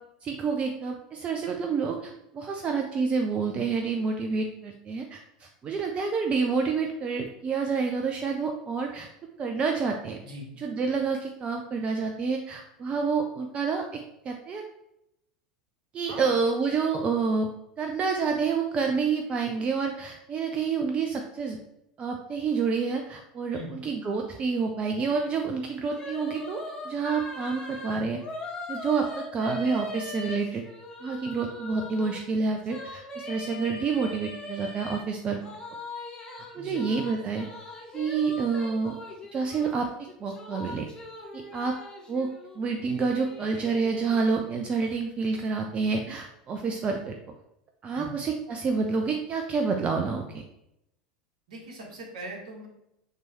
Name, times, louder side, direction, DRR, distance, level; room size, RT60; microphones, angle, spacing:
voice 1, 0.2-9.1 9.4-10.2 10.6-14.6 15.9-17.5 17.8-21.6 22.0-28.2 28.7-30.6 31.0-35.4 36.5-37.5 37.9-38.9 39.3-40.9 41.3-41.8 42.1-42.3 42.6-47.1 47.8-50.4, right 5 dB, 30° right, 3 dB, 0.6 m, -28 dB
sound 1, 26.0-32.2 32.6-35.0 35.4-39.7 40.1-44.3, left 2 dB, 20° left, 1.5 m, -40 dB
voice 2, 51.5-52.7, right 1 dB, 60° right, -1 dB, 1.6 m, -40 dB
6.7 x 3.1 x 4.5 m, 0.83 s
figure-of-eight pair, 75°, 4 cm